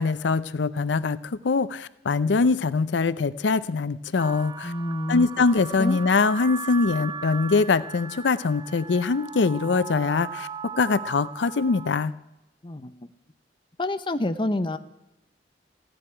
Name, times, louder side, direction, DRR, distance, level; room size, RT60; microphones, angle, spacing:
voice 1, 0.0-4.7 5.1-10.5 10.8-12.1, left 4 dB, 90° left, 16 dB, 0.5 m, -23 dB
sound 1, 4.2-12.1, right 6 dB, 25° right, 0.5 m, -38 dB
voice 2, 4.6-5.4 5.8-6.0 12.6-13.1 13.8-14.8, left 1 dB, 30° left, 10 dB, 0.7 m, -28 dB
15.0 x 7.9 x 10.0 m, 0.96 s
head